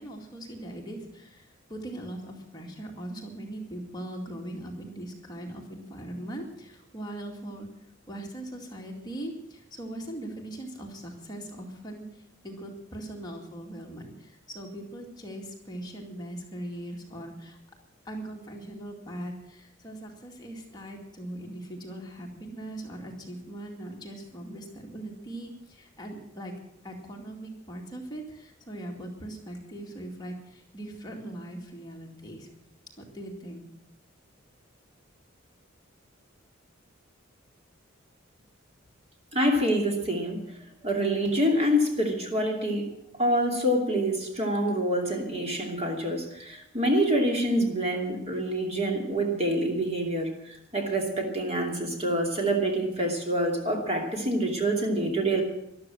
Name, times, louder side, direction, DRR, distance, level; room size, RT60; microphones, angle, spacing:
voice 1, 0.0-7.7 8.1-17.6 18.0-26.5 26.8-32.5 33.0-33.7, right 1 dB, 20° left, 0 dB, 2.3 m, -40 dB
voice 2, 39.3-40.4 40.8-42.9 43.2-55.4, right 1 dB, 30° right, 2 dB, 2.7 m, -26 dB
13.5 x 12.0 x 7.5 m, 0.78 s
head